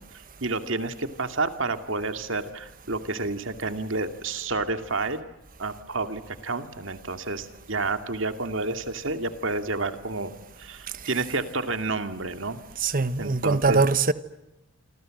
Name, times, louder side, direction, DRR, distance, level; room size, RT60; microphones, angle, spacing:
voice 1, 0.4-5.2 5.6-10.3 10.6-12.6 13.2-13.8, right 3 dB, 70° right, 2.4 m, -30 dB
voice 2, 12.8-14.1, right 4 dB, 45° right, 1.2 m, -22 dB
27.0 x 27.0 x 7.8 m
head